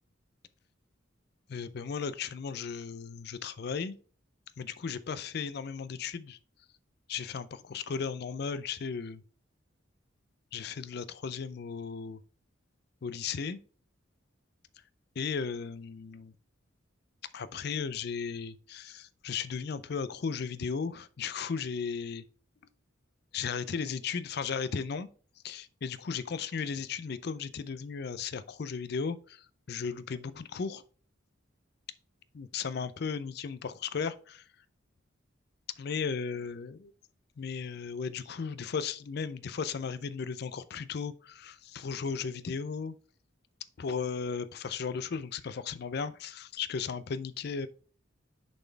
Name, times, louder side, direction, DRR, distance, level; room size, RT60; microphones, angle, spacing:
voice 1, 1.5-4.0 4.6-6.4 7.1-9.2 10.5-12.2 13.0-13.6 15.2-16.3 17.3-22.2 23.3-25.1 25.4-29.4 29.7-30.8 32.3-34.4 35.8-36.8 37.4-42.9 43.8-47.7, left 5 dB, 55° left, 0.4 m, -35 dB
6.5 x 4.3 x 4.4 m
head